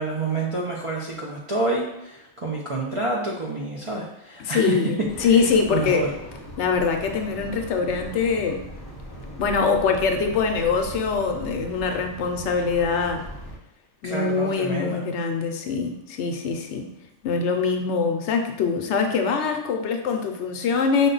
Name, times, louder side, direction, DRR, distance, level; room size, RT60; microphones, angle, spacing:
voice 1, 0.0-6.1 14.0-15.0, right 2 dB, 45° right, -4 dB, 0.4 m, -28 dB
voice 2, 4.5-6.1 6.6-8.6 9.4-13.2 14.0-16.9 17.2-21.1, left 5 dB, 75° left, 4 dB, 0.8 m, -23 dB
sound 1, 5.0-13.6, equal, 25° left, 0.6 m, -39 dB
5.4 x 2.2 x 3.8 m, 0.84 s
omnidirectional pair, 1.2 m